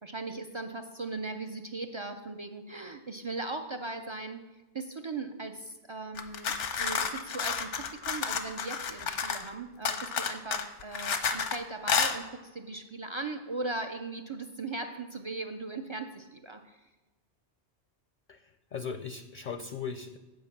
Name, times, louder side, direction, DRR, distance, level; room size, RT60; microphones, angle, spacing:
voice 1, 0.0-16.8, right 3 dB, 50° right, 6 dB, 0.3 m, -38 dB
sound 1, 6.2-9.5 9.9-11.6 11.9-12.2, left 6 dB, 90° left, 1.1 m, -30 dB
voice 2, 18.3-20.2, left 6 dB, 55° left, 10 dB, 0.5 m, -38 dB
9.4 x 5.2 x 7.2 m, 1.2 s
omnidirectional pair, 1.2 m